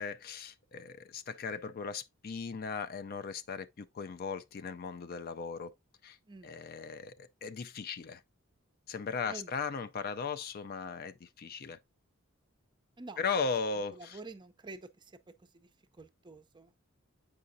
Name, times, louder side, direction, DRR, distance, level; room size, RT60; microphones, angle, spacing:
voice 1, 0.0-5.7 6.0-6.2 6.4-8.2 8.9-11.8 13.2-14.2, left 5 dB, 45° left, 0.4 m, -37 dB
voice 2, 14.0-15.1 15.5-15.7 16.0-16.7, right 3 dB, 20° right, 0.5 m, -48 dB
7.5 x 4.9 x 2.6 m
head